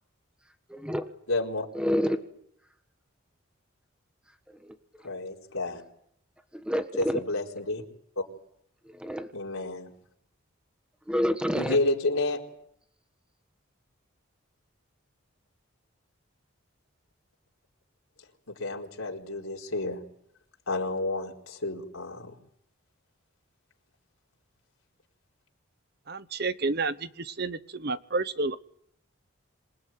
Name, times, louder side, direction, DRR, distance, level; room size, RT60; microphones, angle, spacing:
voice 1, 0.7-1.0 1.7-2.2 4.6-4.7 6.5-7.2 8.9-9.3 11.1-11.8, equal, 5° right, 1.4 m, -28 dB
voice 2, 1.3-1.7 5.0-5.8 7.0-7.8 9.3-9.9 11.5-12.4 18.5-20.0 20.7-22.3, left 2 dB, 90° left, 4.3 m, -30 dB
voice 3, 26.1-28.6, right 3 dB, 50° right, 1.0 m, -30 dB
27.0 x 19.0 x 9.3 m
head